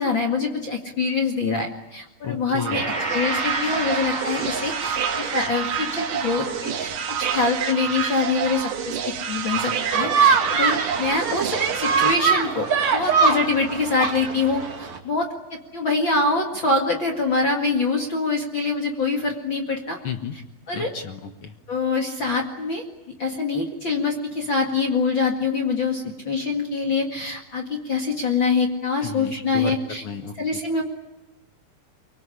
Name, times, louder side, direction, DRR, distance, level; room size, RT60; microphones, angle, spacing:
voice 1, 0.0-2.8 3.1-9.0 9.3-20.0 20.7-20.9 21.7-22.8 23.2-30.0 30.4-30.8, left 3 dB, 40° left, 3 dB, 2.2 m, -25 dB
voice 2, 2.2-2.8 20.0-20.4 20.7-21.5 29.0-30.3, left 7 dB, 70° left, 7 dB, 1.2 m, -33 dB
sound 1, 2.6-12.1, right 8 dB, 65° right, 2.9 m, -28 dB
Gong, 2.7-11.9, right 2 dB, 15° right, 2.4 m, -34 dB
sound 2, 9.9-15.0, right 5 dB, 50° right, 3.5 m, -22 dB
24.0 x 23.5 x 9.9 m, 0.96 s
omnidirectional pair, 4.4 m